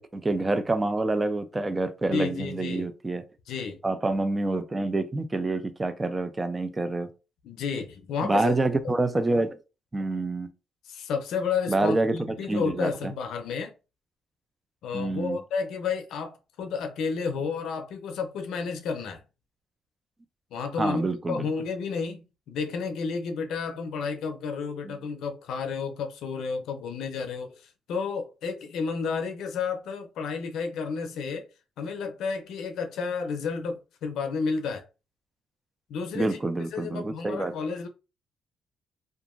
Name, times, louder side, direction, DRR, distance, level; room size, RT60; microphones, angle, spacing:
voice 1, 0.0-3.2 3.8-7.1 8.2-9.6 9.9-10.5 11.7-13.1 14.9-15.4 20.8-21.5 24.8-24.9 36.1-37.5, right 2 dB, 20° right, 0.5 m, -27 dB
voice 2, 2.1-2.9 3.5-3.8 7.4-8.5 10.9-13.7 14.8-19.2 20.5-31.5 31.8-34.9 35.9-36.4 36.7-37.9, left 5 dB, 80° left, 0.5 m, -31 dB
2.7 x 2.4 x 2.5 m
cardioid pair, 90°, 0 cm